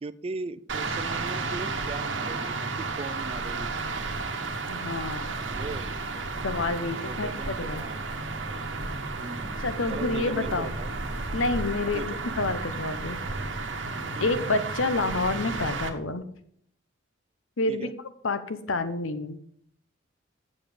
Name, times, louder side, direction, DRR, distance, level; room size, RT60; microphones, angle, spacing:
voice 1, 0.0-3.7 5.4-5.9 6.9-8.0 9.2-10.9 11.9-12.2 14.1-14.4 17.7-17.9, right 3 dB, 30° right, 15 dB, 0.3 m, -39 dB
sound 1, 0.7-15.9, right 3 dB, 65° right, 1.0 m, -32 dB
voice 2, 4.7-5.3 6.4-7.9 9.6-10.7 11.3-13.2 14.2-16.3 17.6-17.9 18.2-19.4, left 3 dB, 90° left, 11 dB, 0.8 m, -28 dB
7.4 x 7.1 x 5.1 m, 0.66 s
head